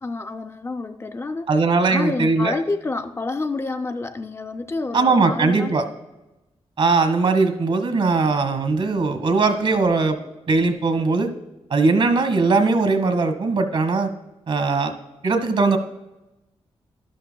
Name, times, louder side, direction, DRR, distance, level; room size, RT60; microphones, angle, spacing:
voice 1, 0.0-1.5 1.9-5.7, left 3 dB, 25° left, 7 dB, 0.4 m, -28 dB
voice 2, 1.5-2.5 4.9-5.8 6.8-10.2 10.5-11.3 11.7-14.1 14.5-14.9 15.2-15.8, right 3 dB, 65° right, 9 dB, 1.3 m, -19 dB
12.5 x 12.0 x 2.3 m, 0.98 s
wide cardioid pair, 145°, 11 cm